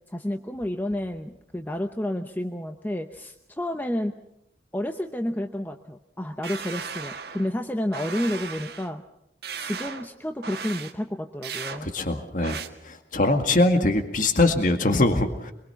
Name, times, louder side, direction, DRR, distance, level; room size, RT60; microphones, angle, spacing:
voice 1, 0.1-4.2 4.7-9.0 9.6-11.9, left 1 dB, 10° left, 6 dB, 0.8 m, -30 dB
sound 1, 6.4-7.5 7.9-8.9 9.4-10.1 10.4-10.9 11.4-11.8 12.4-12.7, right 6 dB, 65° right, 1.6 m, -36 dB
voice 2, 11.8-12.6 12.9-15.5, left 2 dB, 50° left, 6 dB, 2.0 m, -22 dB
25.0 x 22.0 x 5.8 m, 0.79 s
head